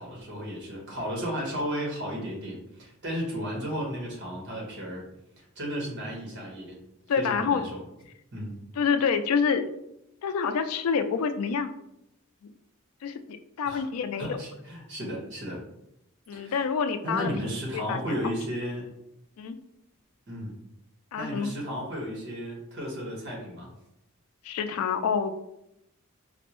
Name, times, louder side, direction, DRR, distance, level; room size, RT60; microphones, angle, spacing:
voice 1, 0.0-5.0 5.4-6.8 7.2-7.8 8.3-8.5 13.6-13.8 14.2-15.6 16.3-16.6 17.0-18.9 20.3-20.5 21.1-23.7, equal, 55° right, -2 dB, 1.2 m, -34 dB
voice 2, 7.1-7.6 8.8-9.6 10.2-11.7 13.0-14.4 16.3-17.3 17.7-18.2 19.4-19.6 21.1-21.5 24.4-25.4, left 6 dB, 85° left, 10 dB, 0.3 m, -27 dB
4.3 x 2.0 x 3.0 m, 0.81 s
head